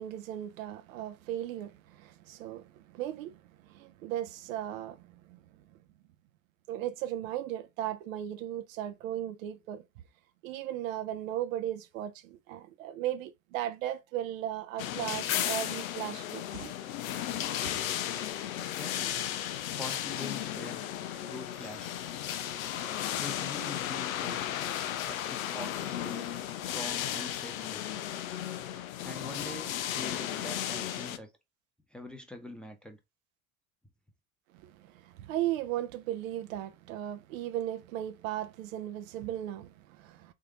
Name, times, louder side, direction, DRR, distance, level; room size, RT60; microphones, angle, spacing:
voice 1, 0.0-5.6 6.7-9.8 10.4-16.7 34.6-40.3, right 12 dB, 75° right, 0.6 m, -36 dB
sound 1, 14.8-31.2, left 11 dB, 80° left, 0.5 m, -34 dB
voice 2, 18.6-19.2 19.8-20.8 21.3-21.9 23.2-24.4 25.1-26.3 26.7-27.9 29.0-31.3 31.9-33.0, left 1 dB, ahead, 0.9 m, -44 dB
3.6 x 2.8 x 3.7 m
hypercardioid pair, 70°, 41 cm